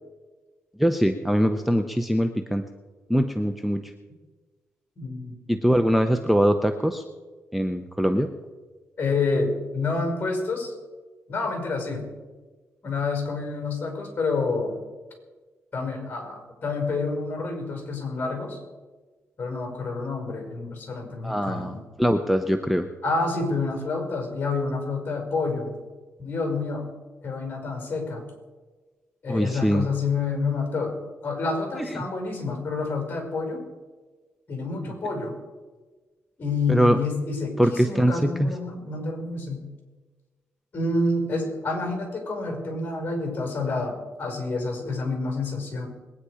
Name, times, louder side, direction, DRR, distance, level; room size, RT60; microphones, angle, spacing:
voice 1, 0.8-2.6 3.1-3.8 5.5-7.0 7.5-8.3 21.2-22.9 29.3-29.9 31.9-32.0 36.7-37.0 37.6-38.5, equal, ahead, 7 dB, 0.7 m, -22 dB
voice 2, 5.0-5.3 9.0-10.7 11.3-12.1 12.8-14.8 15.7-18.6 19.4-21.8 23.0-25.8 26.2-26.9 27.2-28.2 29.2-33.6 34.5-35.4 36.4-39.6 40.7-45.9, left 3 dB, 35° left, 3 dB, 5.5 m, -28 dB
22.0 x 9.8 x 5.0 m, 1.3 s
cardioid pair, 110°, 5 cm